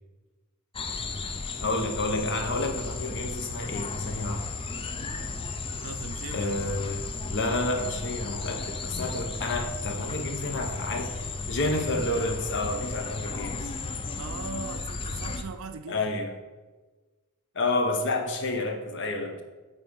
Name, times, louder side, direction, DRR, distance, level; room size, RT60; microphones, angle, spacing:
sound 1, 0.7-15.4, left 3 dB, 25° left, 0.4 m, -34 dB
voice 1, 1.6-4.4 6.3-13.7 15.9-16.3 17.5-19.4, left 2 dB, 55° left, 4 dB, 1.0 m, -30 dB
voice 2, 5.7-6.5 14.2-16.2, right 4 dB, 60° right, 7 dB, 0.5 m, -40 dB
8.9 x 3.5 x 5.5 m, 1.2 s
head